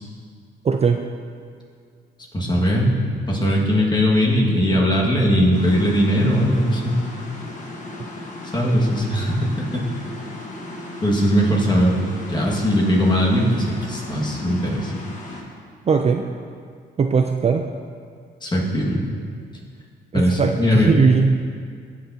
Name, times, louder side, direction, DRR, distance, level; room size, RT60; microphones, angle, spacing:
voice 1, 0.6-1.0 15.9-16.2 17.0-17.6 20.1-21.3, right 5 dB, 30° right, 4 dB, 0.4 m, -18 dB
voice 2, 2.3-3.0 3.3-7.0 8.5-9.5 9.7-9.8 11.0-12.0 12.3-14.9 18.4-19.0 20.1-20.9, equal, 20° left, -3 dB, 1.8 m, -19 dB
sound 1, 5.5-15.4, left 2 dB, 40° left, 1.5 m, -36 dB
15.5 x 6.0 x 2.8 m, 2.2 s
cardioid pair, 90°, 20 cm